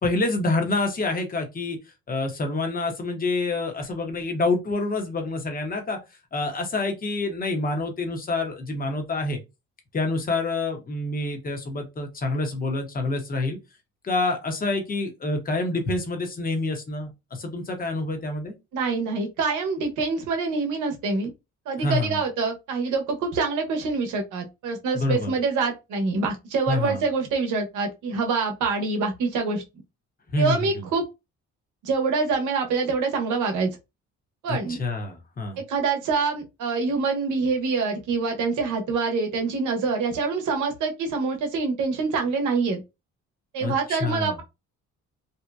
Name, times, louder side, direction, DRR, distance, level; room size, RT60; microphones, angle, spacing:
voice 1, 0.0-1.8 2.1-6.0 6.3-9.4 9.9-13.6 14.0-18.5 21.8-22.1 24.9-25.3 26.7-27.0 30.3-30.6 34.5-35.6 43.6-44.4, left 2 dB, 30° left, 0.8 m, -27 dB
voice 2, 18.7-21.3 21.7-29.6 30.4-31.1 31.8-33.7 34.4-34.8 35.6-42.8 43.5-44.4, right 4 dB, 80° right, 0.8 m, -25 dB
2.7 x 2.1 x 2.2 m
cardioid pair, 90°, 30 cm